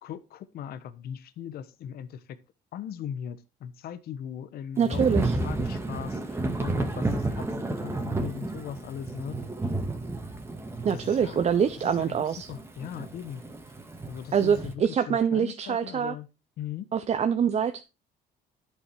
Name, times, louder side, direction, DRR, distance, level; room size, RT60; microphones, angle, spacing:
voice 1, 0.0-2.2 2.7-7.5 7.8-9.4 10.9-11.5 11.8-13.4 14.1-16.3 16.6-16.9, left 9 dB, 65° left, 1.1 m, -39 dB
voice 2, 4.8-5.4 10.8-12.5 14.3-16.1 16.9-17.8, right 7 dB, 40° right, 0.9 m, -25 dB
Thunder / Rain, 4.9-14.7, right 2 dB, 15° right, 1.9 m, -32 dB
11.5 x 7.1 x 4.5 m
cardioid pair, 110°, 17 cm